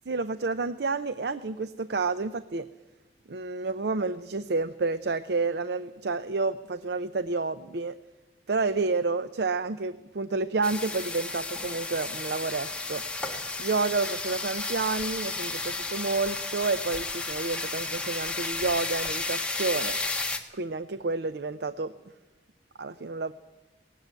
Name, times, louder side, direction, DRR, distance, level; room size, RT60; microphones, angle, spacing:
voice 1, 0.1-2.7 3.3-7.9 8.5-13.0 13.6-20.0 20.5-21.9 22.8-23.3, right 3 dB, 70° right, 13 dB, 0.6 m, -29 dB
sound 1, 10.6-20.4, left 3 dB, 5° left, 1.4 m, -33 dB
18.5 x 16.0 x 9.5 m, 1.1 s
head